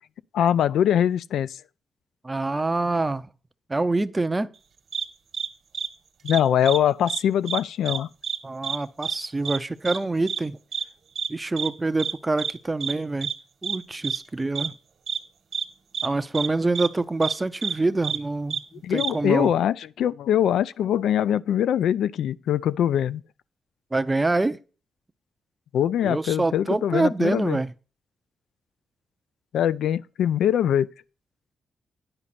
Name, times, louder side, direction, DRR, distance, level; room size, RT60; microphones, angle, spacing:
voice 1, 0.3-1.6 6.2-8.1 18.8-23.2 25.7-27.6 29.5-30.9, left 10 dB, 85° left, 0.3 m, -23 dB
voice 2, 2.2-3.2 3.7-4.5 8.4-10.6 11.3-13.3 13.6-14.7 16.0-18.6 18.9-19.5 23.9-24.6 26.0-27.7, right 2 dB, 20° right, 0.5 m, -25 dB
sound 1, 4.9-5.1 5.3-5.5 5.7-5.9 6.3-6.8 7.1-7.2 7.5-8.0 8.2-8.4 8.6-8.8 9.0-9.2 9.5-9.6 9.9-10.0 10.3-10.4 10.7-10.8 11.2-11.3 11.6-11.7 12.0-12.1 12.4-12.5 12.8-12.9 13.2-13.3 13.6-13.8 14.0-14.2 14.6-14.7 15.1-15.2 15.5-15.7 15.9-16.1 16.3-16.5 16.8-16.9 17.2-17.3 17.6-17.7 18.0-18.2 18.5-18.6 19.0-19.1, right 7 dB, 65° right, 1.2 m, -28 dB
9.8 x 5.0 x 4.2 m
cardioid pair, 95°, 0 cm